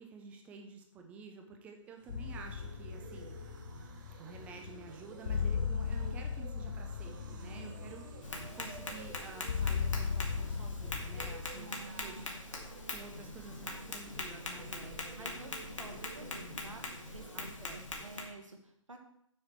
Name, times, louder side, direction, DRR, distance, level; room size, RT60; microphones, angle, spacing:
voice 1, 0.0-3.4 4.2-12.3 12.9-15.4 17.3-18.1, right 4 dB, 10° right, 4 dB, 0.5 m, -51 dB
sound 1, 1.8-17.4, right 5 dB, 35° right, 1.2 m, -53 dB
sound 2, 2.1-11.5, left 6 dB, 40° left, 0.6 m, -37 dB
voice 2, 7.5-7.9 11.5-12.3 15.2-19.0, right 3 dB, 70° right, 4 dB, 1.6 m, -50 dB
Tap, 8.2-18.2, left 2 dB, 70° left, 1.9 m, -43 dB
6.7 x 6.5 x 4.5 m, 0.72 s
figure-of-eight pair, 135°, 17 cm